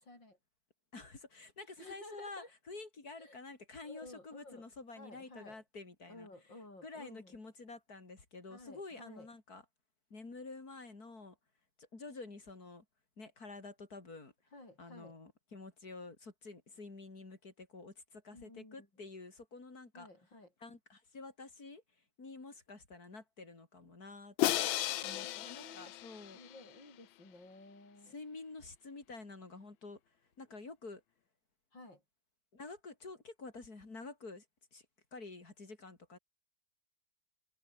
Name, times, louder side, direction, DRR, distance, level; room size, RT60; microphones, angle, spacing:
voice 1, 0.1-0.4 1.8-2.5 3.2-3.4 3.8-4.7 5.0-5.6 6.1-7.4 8.5-9.3 14.5-15.2 18.3-18.9 19.9-20.5 24.6-25.9 26.3-28.1 31.7-32.0, left 2 dB, 65° left, 8.8 m, -54 dB
voice 2, 0.9-6.3 6.8-9.6 10.1-11.4 11.8-12.8 13.2-14.3 14.8-20.1 20.6-21.8 22.2-24.6 25.0-26.4 28.1-31.0 32.5-34.5 34.7-34.9 35.1-36.2, left 3 dB, 50° left, 4.3 m, -49 dB
Crash cymbal, 24.4-26.6, left 14 dB, 80° left, 1.5 m, -34 dB
omnidirectional pair, 2.2 m